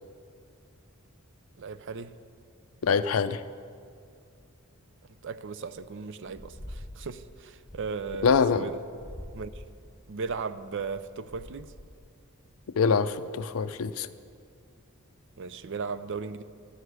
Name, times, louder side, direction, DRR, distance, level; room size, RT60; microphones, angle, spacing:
voice 1, 1.6-2.1 5.2-8.8 9.3-9.5 10.1-11.7 15.4-16.4, right 5 dB, 55° right, 0.5 m, -36 dB
voice 2, 2.8-3.4 8.2-8.7 12.8-14.1, left 5 dB, 70° left, 0.5 m, -24 dB
sound 1, 5.7-6.0 6.3-7.2 7.5-8.7 8.9-12.1, left 1 dB, 15° left, 1.0 m, -46 dB
11.5 x 6.5 x 9.4 m
head